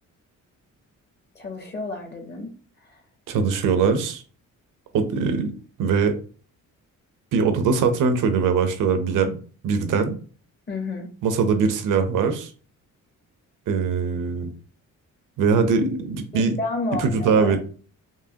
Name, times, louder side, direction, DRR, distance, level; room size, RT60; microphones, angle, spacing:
voice 1, 1.3-2.5 2.8-3.0 10.7-11.1 16.3-17.6, left 2 dB, 30° left, 3 dB, 0.8 m, -31 dB
voice 2, 3.3-4.2 4.9-5.5 5.8-6.2 7.3-9.4 9.6-10.1 11.2-12.5 13.7-14.5 15.4-16.6 17.0-17.6, right 5 dB, 70° right, 7 dB, 0.8 m, -21 dB
4.7 x 2.8 x 2.8 m, 0.40 s
cardioid pair, 145°, 32 cm